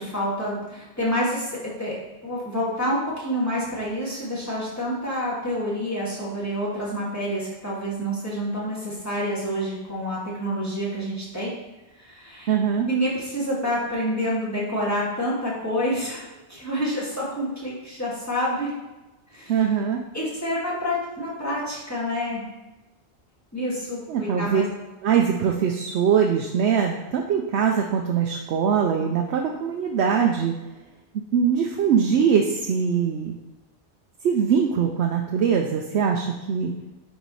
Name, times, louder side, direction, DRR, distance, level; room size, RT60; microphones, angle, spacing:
voice 1, 0.0-1.9 2.2-11.5 12.0-12.5 12.9-18.7 19.3-19.6 20.1-22.4 23.5-24.7, equal, 15° left, -8 dB, 2.1 m, -28 dB
voice 2, 12.5-12.9 19.5-20.0 24.1-24.6 25.0-30.5 31.1-33.3 34.2-36.7, right 7 dB, 75° right, 2 dB, 0.9 m, -22 dB
8.9 x 4.1 x 3.2 m, 1.0 s
omnidirectional pair, 1.2 m